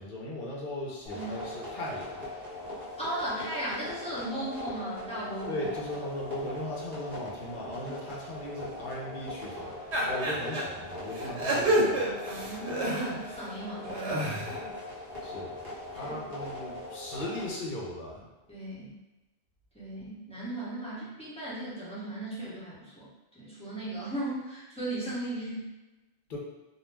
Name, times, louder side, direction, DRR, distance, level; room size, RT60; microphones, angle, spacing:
voice 1, 0.0-2.3 5.5-12.0 15.2-15.6 15.9-18.3 26.3-26.4, left 1 dB, 55° left, -3 dB, 0.7 m, -38 dB
sound 1, 1.1-17.5, left 1 dB, 40° right, 1.0 m, -40 dB
voice 2, 3.0-5.6 9.6-9.7 12.2-14.7 16.0-16.2 18.5-18.9 19.7-23.1 23.3-25.7, right 1 dB, 5° left, -10 dB, 0.8 m, -37 dB
sound 2, 9.9-10.6 11.1-13.4 13.8-14.6, right 1 dB, 85° right, 0.9 m, -28 dB
2.3 x 2.0 x 3.3 m, 1.1 s
omnidirectional pair, 1.1 m